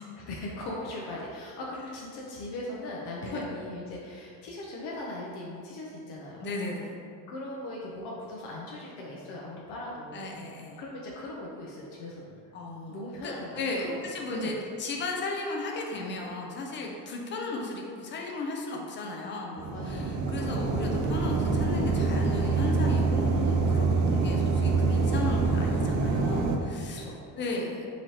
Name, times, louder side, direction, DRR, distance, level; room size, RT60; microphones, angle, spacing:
voice 1, 0.1-6.4 7.3-10.3 10.8-12.4 12.9-14.6 19.7-20.3 26.8-27.4, left 1 dB, 75° left, -4 dB, 0.6 m, -39 dB
voice 2, 6.4-7.0 10.1-10.8 12.5-14.5 14.8-27.0 27.4-27.9, left 2 dB, 30° left, 0 dB, 0.4 m, -35 dB
sound 1, 19.6-26.6, right 3 dB, 85° right, 0.6 m, -25 dB
3.9 x 3.0 x 2.8 m, 2.4 s
cardioid pair, 145°, 41 cm